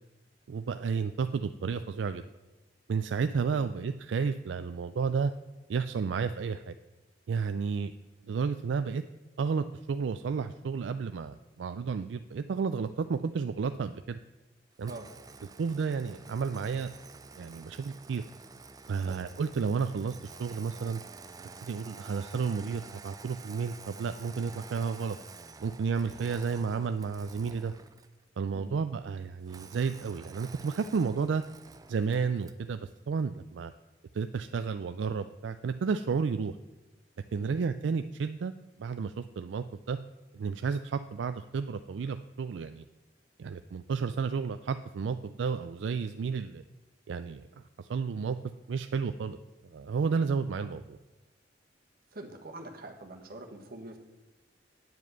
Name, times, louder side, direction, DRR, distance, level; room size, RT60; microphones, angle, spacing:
voice 1, 0.5-2.3 2.9-5.3 5.7-6.8 7.3-7.9 8.3-9.0 9.4-14.2 14.8-14.9 15.6-16.9 17.4-18.2 18.9-21.0 21.6-25.2 25.6-27.7 28.4-31.4 31.9-33.7 34.1-36.6 37.3-38.5 38.8-40.0 40.3-42.8 43.4-46.6 47.1-48.4 48.7-49.4 49.7-51.0, right 5 dB, 80° right, 10 dB, 0.4 m, -32 dB
Engine starting, 14.8-28.2 29.5-32.7, right 4 dB, 20° right, 0.4 m, -49 dB
voice 2, 52.1-54.0, right 2 dB, 55° right, 3 dB, 1.4 m, -45 dB
9.3 x 5.0 x 7.9 m, 1.1 s
head